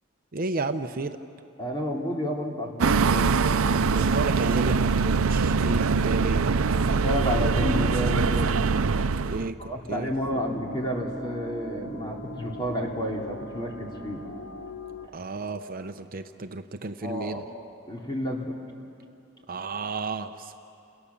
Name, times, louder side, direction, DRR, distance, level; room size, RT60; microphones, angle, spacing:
voice 1, 0.3-1.2 3.7-6.4 9.2-9.6 9.9-10.4 15.1-17.4 19.5-20.6, right 3 dB, 40° right, 7 dB, 0.7 m, -32 dB
voice 2, 1.6-3.4 6.9-8.6 9.6-14.2 17.0-17.4 17.9-18.5, equal, 20° left, -1 dB, 3.1 m, -30 dB
sound 1, 2.8-9.5, right 4 dB, 80° right, 0.6 m, -23 dB
sound 2, 9.9-15.1, left 1 dB, 60° left, 1.3 m, -41 dB
29.5 x 28.0 x 7.1 m, 2.7 s
head